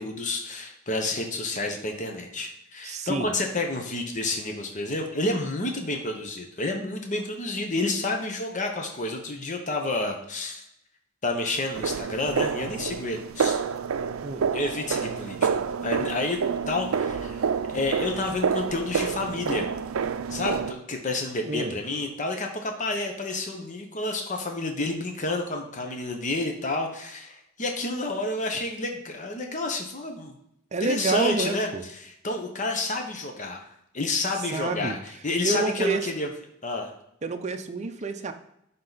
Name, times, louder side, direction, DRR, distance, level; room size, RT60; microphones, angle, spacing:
voice 1, 0.0-10.7 11.2-13.6 14.5-15.5 15.8-16.4 16.7-19.7 20.3-30.3 30.8-33.6 33.9-36.3 36.6-36.9, left 2 dB, 35° left, 3 dB, 1.0 m, -30 dB
voice 2, 2.8-3.3 14.2-14.5 21.5-21.8 30.7-31.8 34.5-34.9 35.4-36.1 37.2-38.3, right 3 dB, 35° right, 5 dB, 0.6 m, -28 dB
sound 1, 11.7-20.7, right 6 dB, 80° right, 0.4 m, -28 dB
11.0 x 3.8 x 4.0 m, 0.78 s
head